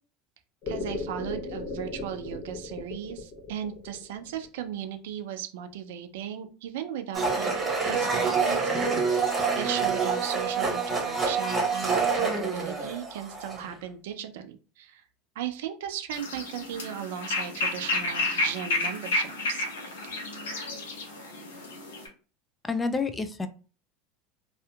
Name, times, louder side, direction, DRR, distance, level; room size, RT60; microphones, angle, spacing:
sound 1, 0.6-4.8, left 3 dB, 55° left, 0.9 m, -36 dB
voice 1, 0.7-7.6 7.8-15.0 15.4-19.7, right 10 dB, 75° right, 8 dB, 0.4 m, -37 dB
Domestic sounds home sounds, 7.1-13.7, right 4 dB, 20° right, 1.0 m, -27 dB
sound 2, 16.1-22.1, left 2 dB, 85° left, 0.7 m, -31 dB
voice 2, 22.6-23.5, left 4 dB, 15° left, 9 dB, 0.3 m, -28 dB
2.7 x 2.4 x 2.3 m, 0.37 s
hypercardioid pair, 90°, 0 cm